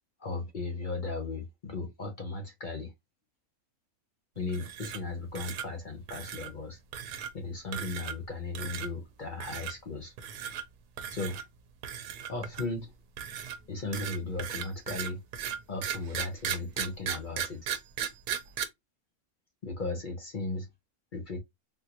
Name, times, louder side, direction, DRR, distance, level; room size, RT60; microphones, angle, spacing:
voice 1, 0.2-2.9 4.4-6.8 7.3-10.1 11.1-11.4 12.3-12.9 13.7-15.2 15.7-17.6 19.6-20.7 21.1-21.4, left 3 dB, 45° left, 0.7 m, -36 dB
sound 1, 4.5-5.1 5.4-5.7 6.1-6.5 6.9-7.3 7.7-8.3 8.6-8.9 9.4-9.7 10.2-10.6 11.0-11.4 11.8-12.8 13.2-18.6, right 9 dB, 90° right, 1.2 m, -36 dB
3.6 x 2.5 x 2.9 m
omnidirectional pair, 1.6 m